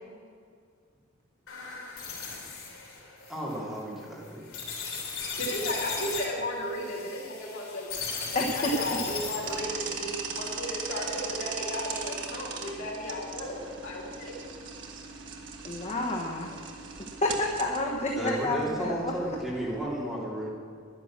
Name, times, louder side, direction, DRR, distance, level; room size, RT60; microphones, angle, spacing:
sound 1, 1.5-9.6, left 5 dB, 80° left, 3.4 m, -37 dB
voice 1, 3.3-4.5 15.7-15.8 18.1-20.5, right 1 dB, ahead, -6 dB, 3.0 m, -33 dB
voice 2, 5.4-14.3, left 1 dB, 60° left, -3 dB, 3.5 m, -35 dB
voice 3, 8.3-9.0 15.6-16.6 17.2-19.1, left 1 dB, 30° left, -1 dB, 1.1 m, -29 dB
sound 2, 9.4-19.8, right 5 dB, 60° right, 1.5 m, -39 dB
11.0 x 10.5 x 7.5 m, 2.2 s
head